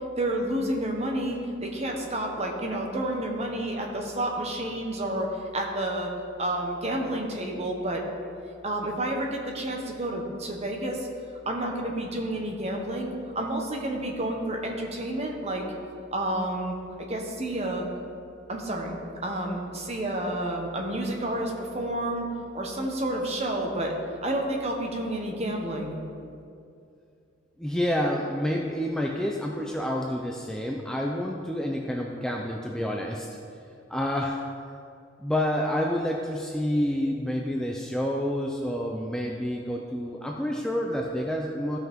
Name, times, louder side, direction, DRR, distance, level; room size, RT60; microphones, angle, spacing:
voice 1, 0.2-6.1 6.4-8.0 8.6-11.1 11.4-15.7 16.1-16.7 17.1-17.9 18.5-22.3 22.5-23.9 24.2-26.0, right 1 dB, 30° right, 1 dB, 1.1 m, -30 dB
voice 2, 27.6-33.3 33.9-34.4 35.2-41.8, equal, 5° left, -1 dB, 0.4 m, -28 dB
14.5 x 5.8 x 3.6 m, 2.5 s
head